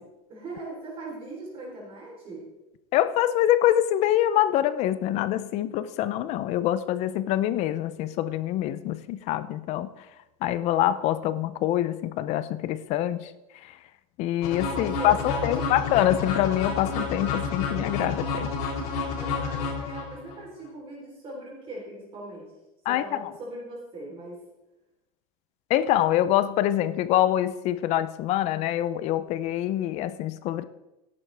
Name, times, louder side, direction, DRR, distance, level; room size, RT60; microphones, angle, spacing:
voice 1, 0.3-2.5 14.7-15.7 19.1-22.5 22.9-24.4, right 1 dB, 30° right, -3 dB, 3.6 m, -40 dB
voice 2, 2.9-9.9 10.4-13.3 13.6-13.8 14.2-18.5 22.9-23.3 25.7-30.6, left 12 dB, 35° left, 15 dB, 0.5 m, -25 dB
sound 1, 14.4-20.4, left 5 dB, 85° left, 3.4 m, -30 dB
14.0 x 11.0 x 3.4 m, 0.98 s
supercardioid pair, 165°, 19 cm